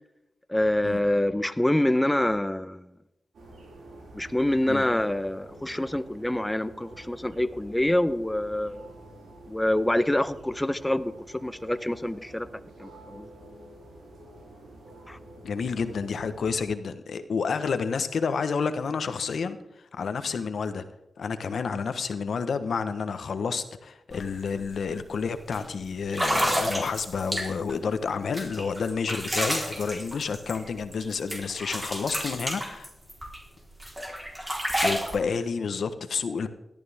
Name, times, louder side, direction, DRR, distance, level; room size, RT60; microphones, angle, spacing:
voice 1, 0.5-2.8 4.1-8.8 9.5-12.5 12.8-13.3 15.1-15.2, left 1 dB, 10° left, 13 dB, 0.9 m, -26 dB
sound 1, 3.3-16.7, right 2 dB, 85° right, 4.9 m, -48 dB
voice 2, 15.4-19.6 19.9-20.8 21.2-32.9 34.8-36.5, left 5 dB, 75° left, 10 dB, 1.1 m, -30 dB
sound 2, 24.1-24.2 24.6-24.9 25.5-25.6 26.1-27.7 28.3-31.0 31.3-33.4 33.8-35.2, equal, 15° right, 4.0 m, -30 dB
17.5 x 12.5 x 3.6 m, 0.87 s
cardioid pair, 55°, 0 cm